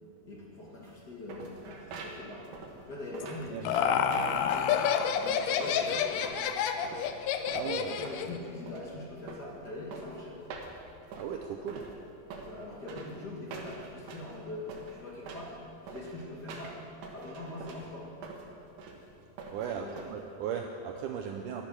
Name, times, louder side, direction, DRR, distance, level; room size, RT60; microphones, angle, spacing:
voice 1, 0.2-2.5 2.8-4.8 5.1-6.3 7.6-10.4 12.4-15.6 15.8-16.8 17.1-18.1 19.7-20.0, left 2 dB, 45° left, -4 dB, 1.4 m, -42 dB
sound 1, 0.8-20.5, right 4 dB, 65° right, 2.5 m, -46 dB
Laughter, 3.2-8.4, left 8 dB, 80° left, 1.9 m, -29 dB
voice 2, 7.5-8.0 11.2-11.8 19.5-21.6, right 8 dB, 90° right, 3 dB, 1.8 m, -36 dB
11.5 x 10.5 x 6.0 m, 2.8 s
omnidirectional pair, 4.4 m